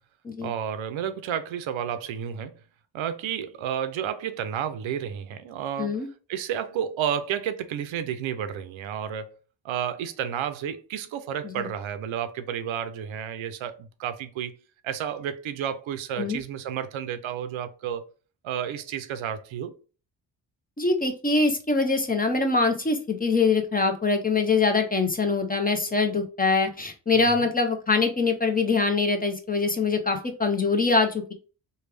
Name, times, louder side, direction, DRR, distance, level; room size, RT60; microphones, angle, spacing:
voice 1, 0.4-2.5 2.9-6.0 6.3-9.4 9.6-14.6 14.8-18.1 18.4-19.8 27.1-27.5, right 9 dB, 80° right, 0.6 m, -31 dB
voice 2, 20.8-31.3, left 4 dB, 20° left, 0.7 m, -23 dB
3.3 x 2.3 x 3.3 m
cardioid pair, 85°, 46 cm